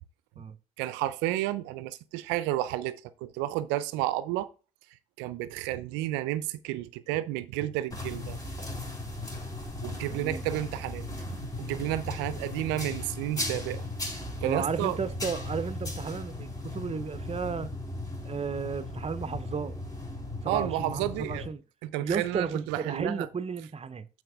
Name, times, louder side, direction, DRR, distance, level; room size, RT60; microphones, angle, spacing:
voice 1, 0.8-4.5 5.2-8.4 9.8-13.8 14.4-15.0 20.5-21.5 21.8-23.3, right 14 dB, 75° right, 0.5 m, -31 dB
sound 1, 7.9-21.5, left 2 dB, 20° left, 4.0 m, -37 dB
voice 2, 10.1-10.4 14.4-17.7 18.2-19.8 20.4-21.6 22.0-24.1, right 5 dB, 35° right, 0.8 m, -33 dB
7.6 x 5.0 x 3.5 m
hypercardioid pair, 45°, 19 cm